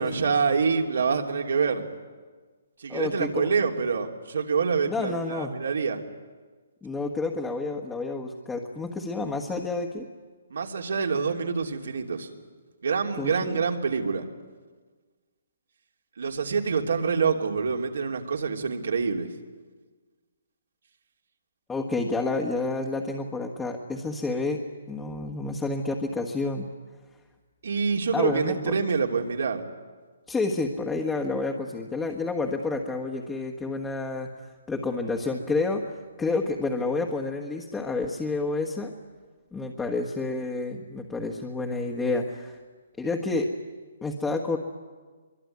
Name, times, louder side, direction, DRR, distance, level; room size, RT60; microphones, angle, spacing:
voice 1, 0.0-1.9 2.8-6.0 10.5-12.3 12.8-14.2 16.2-19.3 27.6-29.6, right 5 dB, 75° right, 3 dB, 3.2 m, -26 dB
voice 2, 2.9-3.5 4.9-5.5 6.8-10.1 13.2-13.6 21.7-26.7 28.1-28.7 30.3-34.3 34.7-38.9 39.5-42.6 43.0-43.5 44.0-44.6, left 3 dB, 10° left, 1 dB, 1.5 m, -29 dB
23.5 x 23.5 x 9.6 m, 1.4 s
hypercardioid pair, 160°, 0 cm